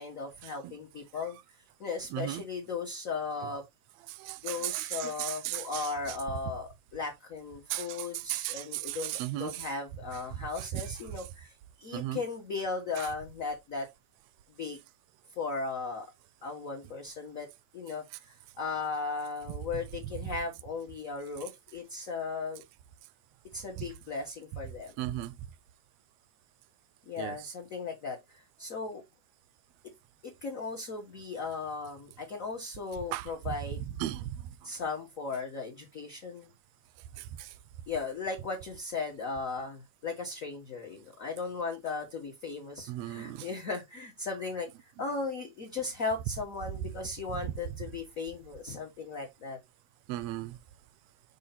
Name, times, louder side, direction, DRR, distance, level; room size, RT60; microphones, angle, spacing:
voice 1, 0.0-1.4 1.8-3.6 4.4-13.9 14.6-14.8 15.4-16.1 16.4-17.5 17.7-22.6 23.5-24.9 27.1-28.2 28.6-29.0 30.2-33.8 34.6-36.5 37.9-44.7 45.0-49.6, left 4 dB, 55° left, 0.8 m, -37 dB
voice 2, 2.1-2.4 4.1-6.2 7.7-9.7 10.4-10.9 11.9-12.2 13.0-13.1 23.8-23.9 25.0-25.3 27.2-27.5 33.1-33.5 34.0-34.4 37.2-37.5 42.9-43.5 50.1-50.6, right 15 dB, 80° right, 1.5 m, -36 dB
6.3 x 2.8 x 5.6 m
omnidirectional pair, 3.4 m